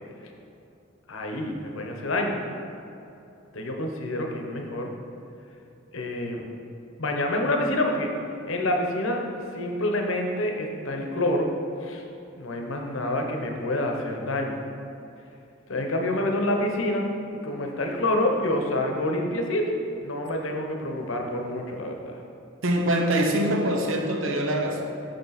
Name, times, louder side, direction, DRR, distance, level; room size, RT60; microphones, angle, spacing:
voice 1, 1.1-2.4 3.5-4.9 5.9-6.5 7.0-8.1 8.5-9.2 9.5-11.5 11.8-12.0 12.4-14.6 15.7-17.1 17.4-19.7 20.0-22.2, left 1 dB, 85° left, 2 dB, 0.9 m, -27 dB
voice 2, 22.6-24.8, right 1 dB, 80° right, 2 dB, 0.9 m, -24 dB
6.7 x 6.5 x 4.1 m, 2.8 s
head